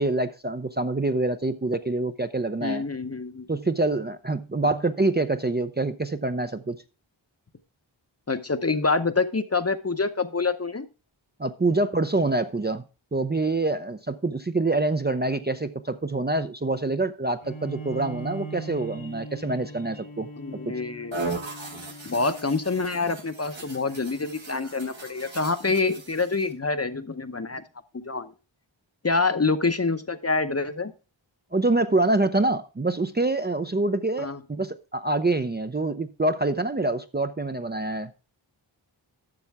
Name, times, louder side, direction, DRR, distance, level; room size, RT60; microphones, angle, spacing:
voice 1, 0.0-2.8 3.5-6.8 11.4-12.8 13.1-20.3 31.5-38.1, right 2 dB, 20° right, 0.5 m, -26 dB
voice 2, 2.6-3.5 8.3-10.9 20.4-21.2 22.0-27.6 27.9-28.3 29.0-30.9 34.2-34.4, left 3 dB, 30° left, 0.7 m, -26 dB
Bowed string instrument, 17.4-23.1, right 2 dB, 80° left, 2.6 m, -40 dB
sound 1, 21.1-26.5, right 3 dB, 70° right, 1.8 m, -38 dB
11.5 x 6.8 x 3.5 m
wide cardioid pair, 45°, 47 cm